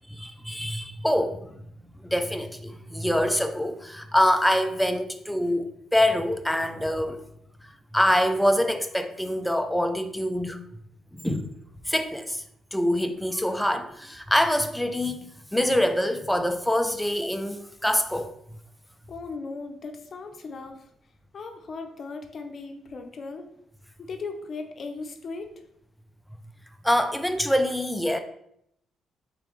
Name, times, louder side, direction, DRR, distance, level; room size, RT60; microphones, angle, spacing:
voice 1, 0.1-1.6 2.0-7.2 7.9-10.6 11.1-11.5 11.9-12.4 12.7-18.3 26.8-28.2, equal, 5° left, 8 dB, 0.4 m, -25 dB
voice 2, 19.1-20.9 21.3-23.5 24.0-25.5, left 4 dB, 45° left, 5 dB, 0.6 m, -37 dB
3.7 x 3.3 x 3.1 m, 0.75 s
cardioid pair, 90°, 0 cm